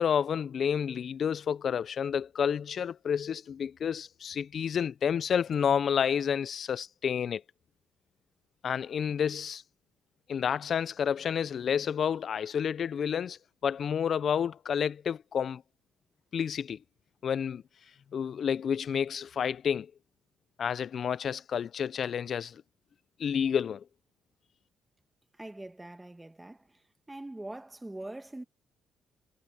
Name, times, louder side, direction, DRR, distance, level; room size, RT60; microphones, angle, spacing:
voice 1, 0.0-7.4 8.6-9.6 10.3-15.6 16.3-16.8 17.2-17.6 18.1-19.9 20.6-22.6 23.2-23.8, left 7 dB, 50° left, 0.4 m, -30 dB
voice 2, 25.4-26.8 27.1-28.4, right 1 dB, 10° right, 1.8 m, -43 dB
cardioid pair, 125°, 0 cm